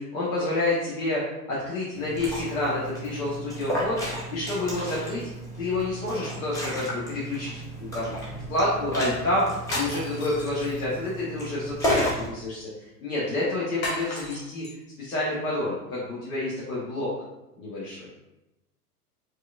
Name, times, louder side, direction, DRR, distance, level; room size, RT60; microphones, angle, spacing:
voice 1, 0.0-4.0 4.3-5.3 5.6-8.1 8.5-14.6 15.0-17.1 17.6-18.1, left 2 dB, 60° left, -7 dB, 1.1 m, -29 dB
Liquid, 1.9-12.3, equal, 10° left, 0.4 m, -33 dB
sound 1, 9.6-11.1 13.8-14.7, left 1 dB, 40° left, 1.1 m, -35 dB
4.5 x 2.5 x 2.4 m, 0.97 s
figure-of-eight pair, 95°, 47 cm